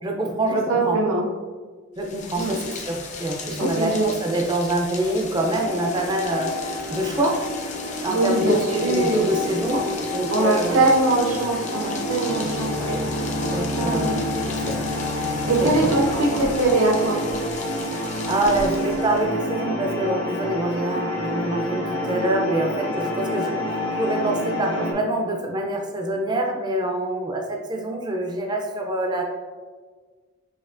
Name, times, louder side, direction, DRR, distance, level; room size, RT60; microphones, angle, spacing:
voice 1, 0.0-1.0 2.0-7.4 8.0-10.9 12.8-13.0 13.5-14.8 15.6-15.9 18.3-29.2, right 1 dB, 20° right, 1 dB, 0.4 m, -26 dB
voice 2, 0.7-1.2 2.4-2.6 3.6-4.0 8.1-9.2 9.7-9.8 10.3-12.8 13.8-14.2 15.5-17.3, right 2 dB, 75° right, -1 dB, 0.9 m, -22 dB
Rain, 2.0-19.4, left 4 dB, 35° left, 0.5 m, -37 dB
sound 1, 5.4-24.9, left 1 dB, 60° left, 1.0 m, -29 dB
sound 2, 12.2-17.2, left 1 dB, 85° left, 0.5 m, -31 dB
6.3 x 2.9 x 2.5 m, 1.4 s
head